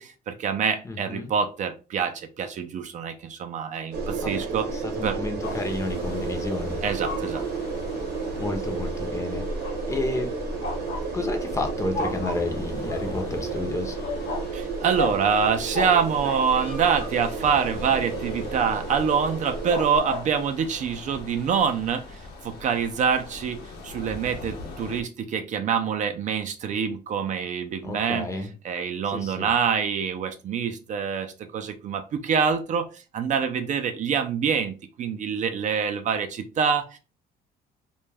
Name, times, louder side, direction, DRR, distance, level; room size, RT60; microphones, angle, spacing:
voice 1, 0.0-4.7 5.0-5.2 6.8-7.4 14.5-28.3 28.6-32.9 33.1-37.0, right 6 dB, 45° right, 6 dB, 0.4 m, -26 dB
voice 2, 0.8-1.3 4.2-6.8 8.4-9.4 9.9-10.3 11.1-14.0 27.8-28.5 29.1-29.5, left 2 dB, 15° left, 4 dB, 0.6 m, -31 dB
sound 1, 3.9-20.0, right 4 dB, 70° right, 0.8 m, -32 dB
sound 2, 5.4-25.0, left 3 dB, 75° left, 0.8 m, -37 dB
2.3 x 2.1 x 3.2 m, 0.32 s
cardioid pair, 110°, 17 cm